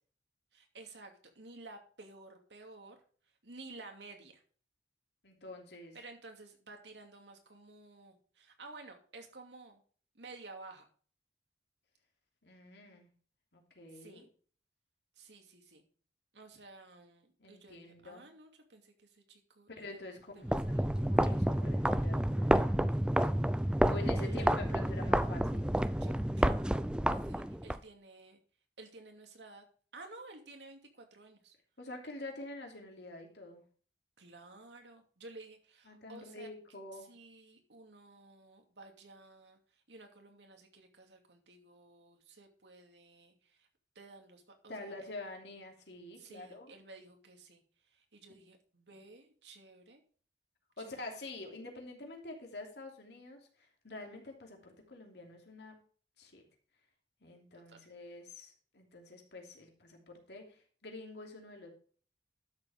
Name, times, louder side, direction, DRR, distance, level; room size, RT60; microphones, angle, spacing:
voice 1, 0.5-3.0 3.2-4.4 5.9-9.8 10.1-10.8 13.9-14.3 15.2-15.8 16.3-20.9 23.9-24.5 26.0-28.4 28.8-29.6 29.9-31.5 34.2-36.5 36.9-43.7 43.9-45.1 46.2-50.0 50.8-51.1 57.7-57.9, right 3 dB, 85° right, 4 dB, 2.6 m, -54 dB
voice 2, 5.2-6.0 12.4-13.1 13.5-14.3 17.4-18.2 19.7-22.9 23.7-25.7 31.8-33.6 35.9-37.1 44.7-46.7 48.9-49.1 50.8-55.8 56.2-56.4 57.2-61.7, left 2 dB, 75° left, 2 dB, 3.0 m, -47 dB
sound 1, 20.4-27.8, right 1 dB, 5° right, 0.4 m, -30 dB
12.0 x 7.4 x 3.6 m, 0.43 s
head